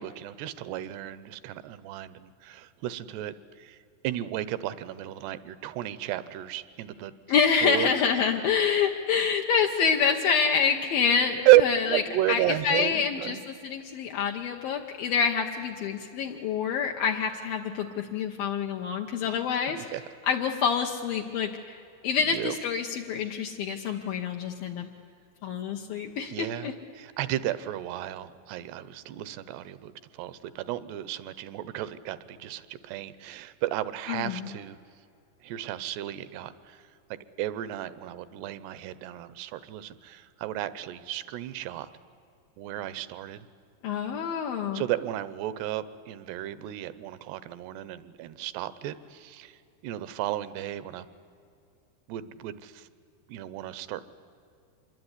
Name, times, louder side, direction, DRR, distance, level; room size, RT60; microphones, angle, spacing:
voice 1, 0.0-3.8 4.0-7.1 7.6-7.9 11.5-11.6 11.9-13.4 19.7-20.0 22.3-22.6 26.3-34.8 35.4-36.9 37.4-41.9 42.6-43.5 44.7-49.6 49.8-51.1 52.1-52.9 53.3-54.0, right 15 dB, 80° right, 16 dB, 2.8 m, -31 dB
voice 2, 7.3-12.0 12.3-19.9 20.3-24.9 25.4-26.7 34.1-34.5 43.8-44.8, left 6 dB, 70° left, 2 dB, 2.5 m, -27 dB
26.5 x 22.0 x 9.8 m, 2.5 s
omnidirectional pair, 5.0 m